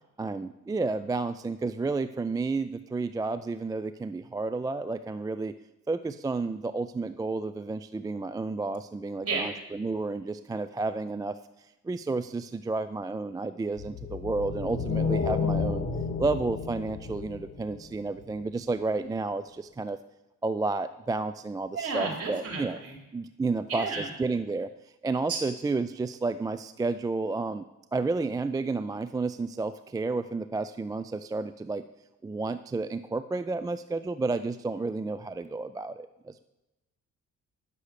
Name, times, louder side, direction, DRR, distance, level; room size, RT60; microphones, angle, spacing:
voice 1, 0.2-5.5 5.9-11.4 11.8-15.8 16.2-20.0 20.4-22.8 23.1-24.7 25.0-27.6 27.9-31.8 32.2-36.4, right 3 dB, 15° right, 12 dB, 0.3 m, -31 dB
sound 1, 13.8-18.2, left 5 dB, 45° left, 2.1 m, -31 dB
voice 2, 21.7-23.0 23.7-24.1 25.3-25.4, right 4 dB, 50° right, 1 dB, 3.6 m, -32 dB
9.8 x 6.8 x 6.5 m, 0.97 s
cardioid pair, 90°, 30 cm